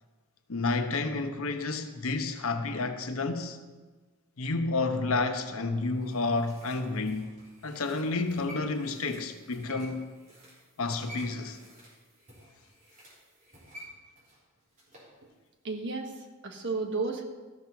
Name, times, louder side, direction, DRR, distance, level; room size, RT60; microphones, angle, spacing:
voice 1, 0.5-3.6 4.4-7.3 7.6-10.1 10.8-11.6, left 3 dB, 75° left, 0.9 m, -30 dB
sound 1, 5.7-15.1 15.5-15.6, equal, 35° right, 3.9 m, -51 dB
voice 2, 15.6-17.2, right 3 dB, 55° right, 1.3 m, -33 dB
14.5 x 6.1 x 5.7 m
head